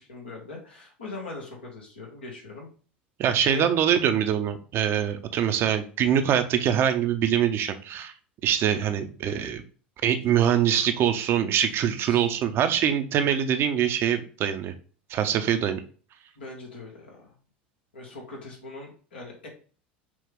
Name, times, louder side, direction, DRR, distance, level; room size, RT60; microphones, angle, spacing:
voice 1, 0.0-2.7 3.4-3.8 12.1-12.3 16.4-17.3 17.9-19.5, left 3 dB, 85° left, -1 dB, 1.6 m, -40 dB
voice 2, 3.2-8.1 8.4-9.6 10.0-14.7 15.1-15.8, right 9 dB, 45° right, 8 dB, 0.7 m, -24 dB
6.0 x 2.4 x 3.6 m, 0.39 s
hypercardioid pair, 80°, 6 cm